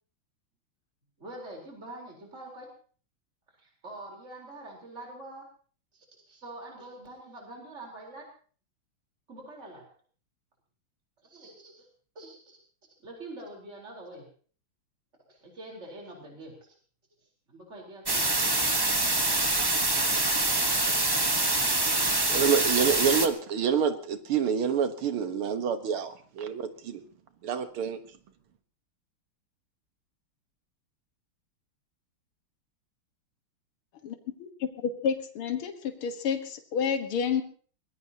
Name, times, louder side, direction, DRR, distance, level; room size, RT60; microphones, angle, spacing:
voice 1, 1.2-2.7 3.5-5.5 5.9-8.3 9.3-9.9 11.2-11.9 12.1-12.6 13.0-14.2 15.3-16.8 17.5-18.4, right 2 dB, 30° right, 0 dB, 4.4 m, -45 dB
sound 1, 18.1-23.3, right 2 dB, 15° right, 0.9 m, -25 dB
voice 2, 22.3-27.0 27.4-28.0, right 7 dB, 85° right, 9 dB, 2.2 m, -27 dB
voice 3, 35.0-37.4, left 7 dB, 80° left, 7 dB, 2.3 m, -29 dB
23.0 x 20.0 x 2.9 m, 0.43 s
omnidirectional pair, 2.3 m